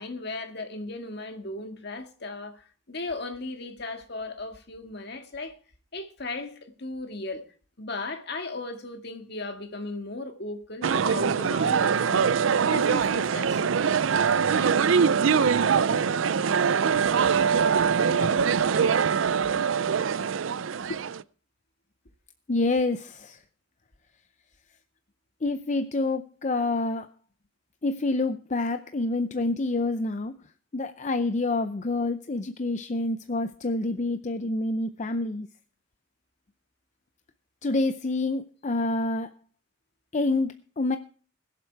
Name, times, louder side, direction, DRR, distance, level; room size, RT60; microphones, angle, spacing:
voice 1, 0.0-5.5 5.9-7.4 7.8-12.3 12.7-13.7 18.1-18.4 20.9-21.0, left 2 dB, 55° left, 1.9 m, -36 dB
sound 1, 10.8-21.2, right 6 dB, 85° right, 0.5 m, -23 dB
voice 2, 22.5-23.4 25.4-27.1 27.8-30.4 30.7-35.5 37.6-39.3 40.1-41.0, left 2 dB, 35° left, 0.6 m, -27 dB
21.0 x 7.5 x 4.6 m
head